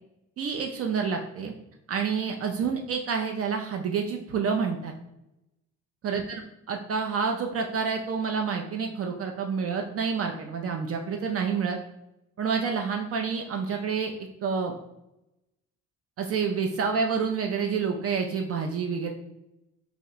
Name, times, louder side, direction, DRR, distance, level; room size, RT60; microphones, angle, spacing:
voice 1, 0.4-1.5 1.9-4.9 6.0-6.4 6.7-11.8 12.4-14.1 14.4-14.7 16.2-19.1, right 6 dB, 50° right, 3 dB, 0.4 m, -28 dB
2.9 x 2.1 x 3.9 m, 0.87 s
cardioid pair, 90°, 30 cm